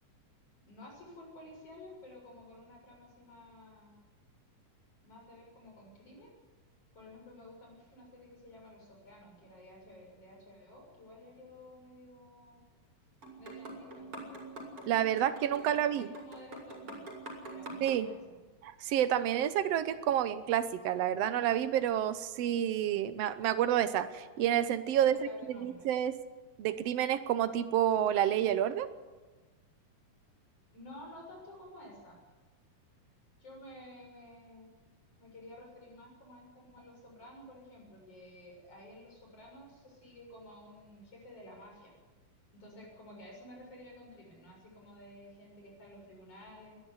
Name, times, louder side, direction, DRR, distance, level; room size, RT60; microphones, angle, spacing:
voice 1, 0.7-3.9 5.0-6.3 6.9-12.6 13.4-14.1 15.5-17.0 17.5-18.2 24.9-25.9 30.7-32.2 33.4-34.7 35.2-41.9 42.5-46.8, left 1 dB, 40° left, -1 dB, 8.1 m, -52 dB
sound 1, 13.2-18.0, right 2 dB, 40° right, 6.4 m, -45 dB
voice 2, 14.9-16.1 17.8-18.1 18.6-25.2 25.5-26.2 26.6-28.9, right 11 dB, 80° right, 12 dB, 1.4 m, -29 dB
22.0 x 13.0 x 9.7 m, 1.3 s
omnidirectional pair, 4.0 m